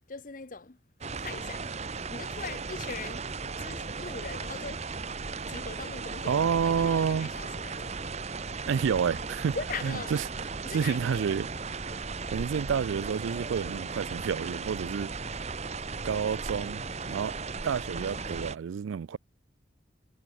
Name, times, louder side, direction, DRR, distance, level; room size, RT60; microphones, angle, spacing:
voice 1, 0.1-0.8 1.2-1.7 2.1-3.2 3.6-4.8 5.5-8.1 9.5-10.2 10.6-11.3, left 4 dB, 40° left, 0.8 m, -41 dB
sound 1, 1.0-18.6, right 4 dB, 35° right, 0.9 m, -36 dB
voice 2, 6.3-7.3 8.7-9.6 9.8-10.2 10.7-11.5 12.3-15.1 16.0-17.3 17.6-19.2, right 7 dB, 80° right, 0.4 m, -29 dB
head